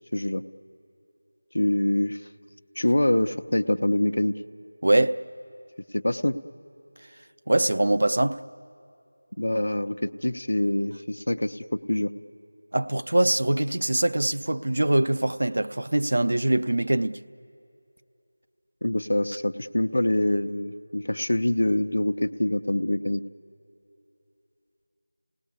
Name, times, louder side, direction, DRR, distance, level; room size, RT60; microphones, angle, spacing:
voice 1, 0.1-0.4 1.5-2.2 2.8-4.4 5.9-6.4 9.4-12.1 18.8-23.2, left 1 dB, 80° left, 0.8 m, -25 dB
voice 2, 4.8-5.2 7.5-8.4 12.7-17.2, right 1 dB, 55° right, 0.5 m, -23 dB
28.0 x 18.5 x 9.7 m
figure-of-eight pair, 180°, 0 cm